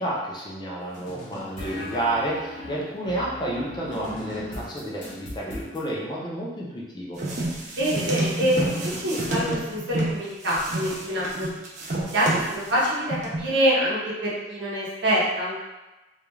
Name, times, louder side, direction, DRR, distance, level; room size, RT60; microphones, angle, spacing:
voice 1, 0.0-7.2, right 1 dB, 25° left, -4 dB, 0.5 m, -30 dB
sound 1, 0.9-5.8, left 1 dB, 50° left, 1.0 m, -38 dB
sound 2, 7.2-10.1 10.5-12.8 13.1-13.4, right 2 dB, 45° right, 0.5 m, -29 dB
voice 2, 7.7-11.5 12.0-15.6, equal, 80° right, -7 dB, 0.7 m, -25 dB
2.4 x 2.2 x 3.0 m, 1.1 s
head